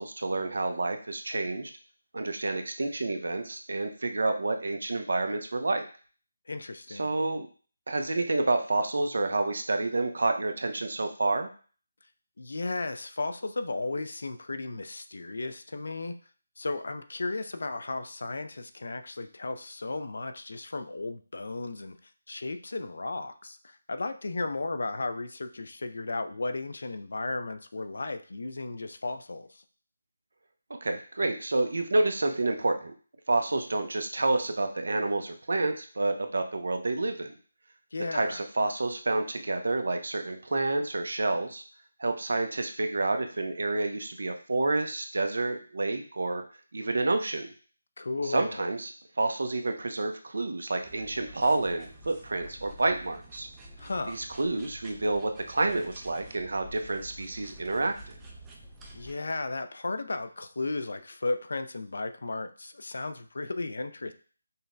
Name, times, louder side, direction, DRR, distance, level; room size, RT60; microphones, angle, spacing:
voice 1, 0.0-1.7 2.1-5.9 6.9-7.5 7.9-11.5 30.8-32.9 33.3-37.3 38.1-41.6 42.0-46.4 46.7-47.5 48.2-48.9 49.2-53.5 54.1-58.2, right 2 dB, 70° right, 6 dB, 0.5 m, -29 dB
voice 2, 6.5-7.1 12.4-16.1 16.6-29.6 37.9-38.4 48.0-48.7 53.8-54.2 58.9-64.1, left 3 dB, 70° left, 9 dB, 0.4 m, -35 dB
sound 1, 50.8-59.1, right 1 dB, 10° right, 0.4 m, -49 dB
5.3 x 2.1 x 2.5 m, 0.41 s
figure-of-eight pair, 170°, 0 cm